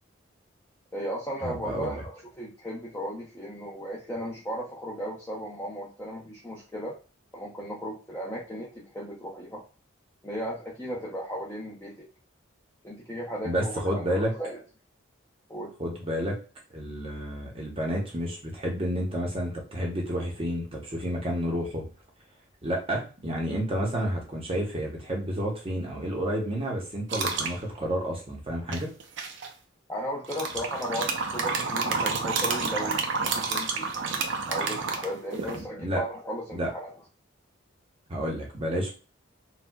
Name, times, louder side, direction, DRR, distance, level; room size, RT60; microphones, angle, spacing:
voice 1, 0.9-7.0 7.3-9.6 10.2-12.1 12.8-14.6 15.5-15.7 29.9-33.0 33.3-33.9 34.5-36.9, equal, 15° left, -4 dB, 0.6 m, -36 dB
voice 2, 1.4-2.0 13.4-14.3 15.8-16.4 16.7-21.8 22.6-28.9 35.5-36.0 36.5-36.7 38.1-38.9, equal, 25° right, -1 dB, 0.7 m, -30 dB
sound 1, 27.1-27.5 28.7-29.5 30.2-35.6, right 4 dB, 65° right, 0.5 m, -29 dB
4.3 x 2.1 x 2.2 m, 0.35 s
head